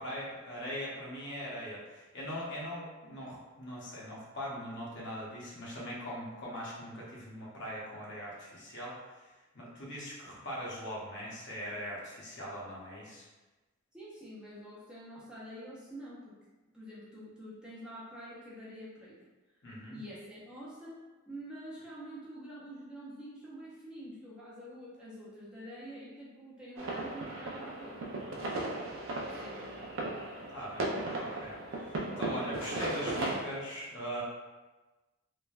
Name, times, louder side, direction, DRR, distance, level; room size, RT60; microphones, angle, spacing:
voice 1, 0.0-13.3 19.6-20.0 30.5-30.9 31.1-31.5 31.9-34.2, equal, 55° left, -5 dB, 0.7 m, -41 dB
voice 2, 13.9-16.3 16.7-19.1 19.9-28.4 29.4-29.8, equal, 5° right, -8 dB, 0.5 m, -47 dB
sound 1, 26.8-33.4, right 2 dB, 65° right, 0.4 m, -36 dB
3.2 x 2.1 x 2.3 m, 1.2 s
head